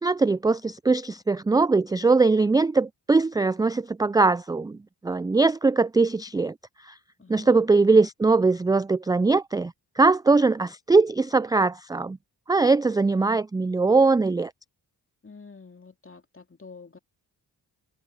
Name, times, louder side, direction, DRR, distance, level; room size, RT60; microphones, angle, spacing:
voice 1, 0.0-4.8 5.0-6.5 6.8-6.9 7.3-12.2 12.5-14.5, right 3 dB, 10° right, 0.3 m, -21 dB
voice 2, 7.2-7.7 15.2-17.0, left 4 dB, 30° left, 2.6 m, -47 dB
supercardioid pair, 45°, 42 cm